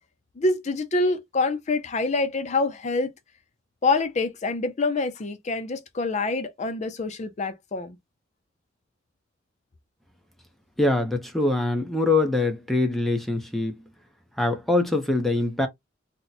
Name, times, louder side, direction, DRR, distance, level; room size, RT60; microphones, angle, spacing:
voice 1, 0.4-3.1 3.8-8.0, left 3 dB, 40° left, 0.5 m, -26 dB
voice 2, 10.8-13.8 14.4-15.7, left 2 dB, ahead, 0.7 m, -23 dB
2.9 x 2.1 x 3.9 m
head